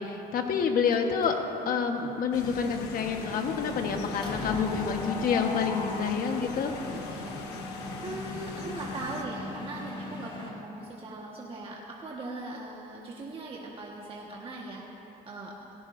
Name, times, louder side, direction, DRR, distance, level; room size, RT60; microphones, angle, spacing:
voice 1, 0.0-1.4 1.6-6.7, left 6 dB, 60° left, 4 dB, 1.3 m, -28 dB
Mechanisms, 0.9-1.5 1.9-2.1 2.3-10.5, left 2 dB, 30° left, 2.2 m, -39 dB
sound 1, 2.3-9.2, left 5 dB, 85° left, 1.1 m, -41 dB
voice 2, 6.9-7.3 7.8-14.8 15.3-15.5, right 2 dB, 35° right, -3 dB, 1.5 m, -40 dB
18.0 x 16.5 x 2.7 m, 2.9 s
cardioid pair, 110°, 17 cm